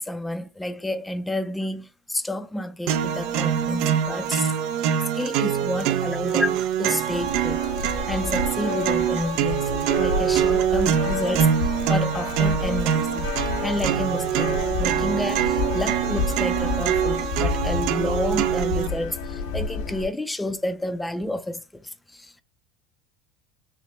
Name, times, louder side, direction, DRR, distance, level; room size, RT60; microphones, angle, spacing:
voice 1, 0.0-4.5 4.8-4.9 5.1-7.7 8.1-9.7 10.0-13.3 13.6-22.4, left 1 dB, 5° left, 0.4 m, -30 dB
sound 1, 2.9-18.9, right 9 dB, 60° right, 0.5 m, -24 dB
sound 2, 7.1-20.1, left 4 dB, 90° left, 1.5 m, -30 dB
5.6 x 2.1 x 3.0 m
supercardioid pair, 135°, 0 cm